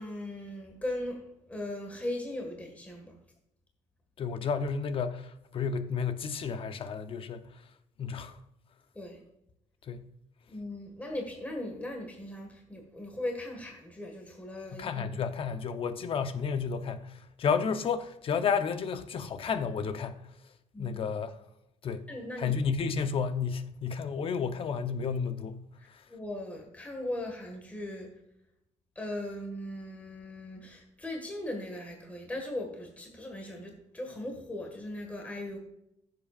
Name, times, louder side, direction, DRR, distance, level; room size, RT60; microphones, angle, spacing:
voice 1, 0.0-3.1 9.0-9.2 10.5-15.2 20.7-21.0 22.1-22.6 25.8-28.1 29.0-35.6, left 1 dB, 10° left, 1.8 m, -38 dB
voice 2, 4.2-7.5 8.0-8.4 9.9-10.0 14.7-20.2 20.8-21.3 21.8-22.0 22.4-26.0, left 6 dB, 45° left, 0.8 m, -32 dB
15.0 x 7.8 x 2.5 m
cardioid pair, 135°, 13 cm